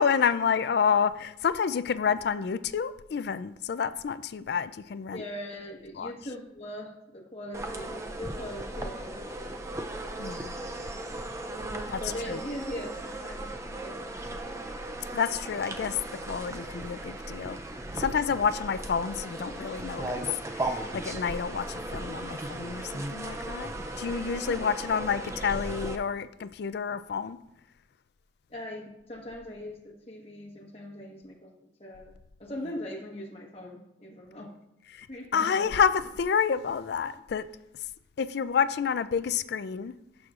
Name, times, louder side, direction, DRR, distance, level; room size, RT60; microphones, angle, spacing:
voice 1, 0.0-5.2 6.0-6.1 10.2-10.5 11.9-12.0 12.3-12.4 15.1-17.6 17.9-20.3 20.5-27.4 34.9-35.1 35.3-37.4 38.2-39.9, left 6 dB, 55° left, 14 dB, 0.3 m, -29 dB
voice 2, 5.1-9.2 12.0-14.6 24.5-24.6 28.5-32.1 32.4-34.5 35.1-35.8, left 1 dB, 30° left, -2 dB, 1.3 m, -41 dB
sound 1, 7.5-25.9, right 1 dB, 15° right, 0.4 m, -37 dB
12.0 x 6.3 x 2.4 m, 0.87 s
head